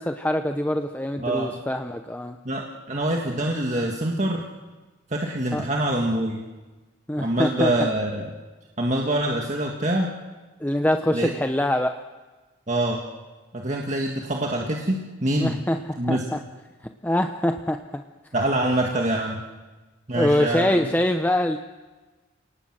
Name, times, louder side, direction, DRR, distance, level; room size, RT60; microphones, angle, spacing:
voice 1, 0.0-2.4 5.5-5.6 7.1-7.9 10.6-11.9 15.4-16.4 17.0-18.0 20.1-21.6, left 1 dB, 10° left, 6 dB, 0.6 m, -24 dB
voice 2, 1.2-1.6 2.5-4.4 5.1-6.4 7.2-8.3 8.8-10.1 11.1-11.3 12.7-13.0 13.5-15.6 16.0-16.2 18.3-19.4 20.1-20.9, right 1 dB, 35° right, 0 dB, 1.8 m, -25 dB
29.0 x 18.5 x 7.6 m, 1.3 s
head